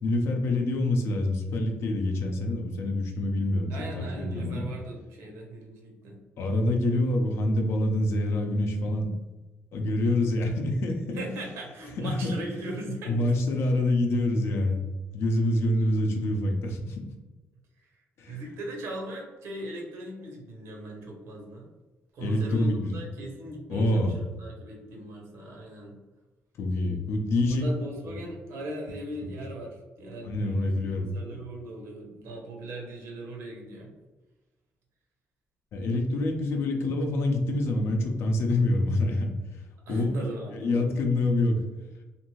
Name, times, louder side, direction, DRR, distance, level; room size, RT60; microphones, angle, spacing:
voice 1, 0.0-4.7 6.4-9.1 9.7-11.2 12.0-12.3 13.1-14.8 15.1-17.0 18.2-18.4 22.2-23.0 23.7-24.1 26.6-27.6 30.2-31.1 35.7-39.3 39.9-40.1 40.5-41.6, left 1 dB, 70° left, 3 dB, 0.5 m, -26 dB
voice 2, 3.7-6.2 11.1-13.2 17.8-17.9 18.3-21.7 22.1-26.0 27.5-33.9 39.9-40.9, right 1 dB, 85° right, 0 dB, 0.9 m, -39 dB
2.6 x 2.5 x 3.0 m, 1.2 s
cardioid pair, 90°, 4 cm